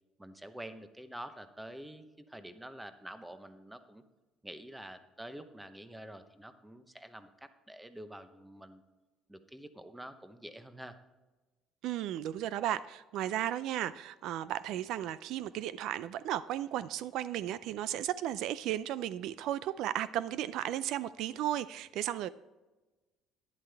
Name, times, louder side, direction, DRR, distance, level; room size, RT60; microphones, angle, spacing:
voice 1, 0.2-4.0 4.4-8.8 9.3-11.0, right 1 dB, 5° right, 10 dB, 0.8 m, -47 dB
voice 2, 11.8-22.3, right 12 dB, 70° right, 16 dB, 0.3 m, -35 dB
11.5 x 10.5 x 3.4 m, 1.2 s
cardioid pair, 125°, 0 cm